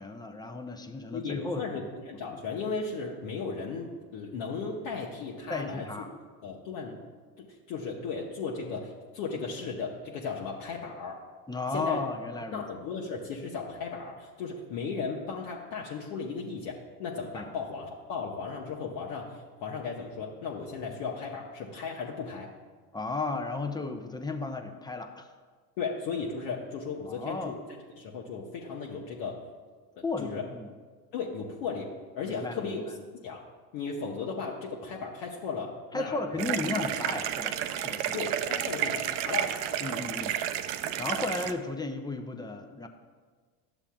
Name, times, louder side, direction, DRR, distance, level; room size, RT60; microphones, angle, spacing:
voice 1, 0.0-1.6 5.5-6.1 11.5-12.7 17.3-17.5 22.9-25.3 27.1-27.6 30.0-30.7 32.3-32.9 35.9-38.2 39.8-40.4 41.0-42.9, left 3 dB, 10° left, 5 dB, 0.5 m, -34 dB
voice 2, 1.1-5.9 6.4-7.0 7.4-11.2 11.7-12.0 12.5-22.5 25.8-27.6 28.0-29.4 30.0-30.4 31.1-32.8 33.2-33.4 33.7-36.4 38.1-39.6, left 5 dB, 70° left, -2 dB, 1.0 m, -36 dB
sound 1, 36.4-41.5, right 10 dB, 70° right, 0.6 m, -31 dB
12.0 x 7.0 x 2.3 m, 1.5 s
hypercardioid pair, 75°, 47 cm